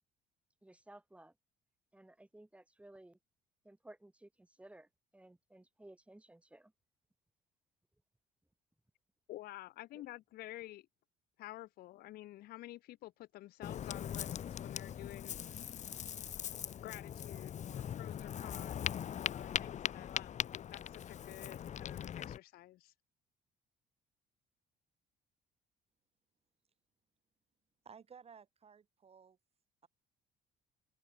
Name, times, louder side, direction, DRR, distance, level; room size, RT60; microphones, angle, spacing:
voice 1, 0.6-1.3 1.9-3.2 3.6-6.7 9.9-10.0, right 1 dB, 5° right, 2.0 m, -57 dB
voice 2, 9.3-10.9 11.4-15.6 16.8-22.9, left 16 dB, 65° left, 0.5 m, -51 dB
Ocean, 13.6-22.4, left 9 dB, 45° left, 0.9 m, -40 dB
voice 3, 27.8-29.4, right 6 dB, 35° right, 2.7 m, -56 dB
open air
cardioid pair, 110°, 17 cm